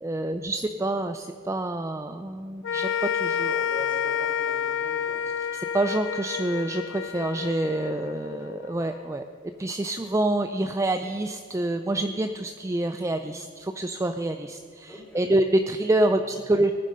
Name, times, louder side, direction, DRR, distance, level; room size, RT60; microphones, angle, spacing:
voice 1, 0.0-3.7 5.5-16.7, right 1 dB, 15° right, 7 dB, 0.4 m, -27 dB
sound 1, 2.6-9.1, left 8 dB, 75° left, 0.5 m, -29 dB
voice 2, 3.6-5.2 14.9-15.2 16.1-16.4, equal, 10° left, -2 dB, 3.2 m, -42 dB
19.0 x 10.0 x 5.5 m, 2.2 s
head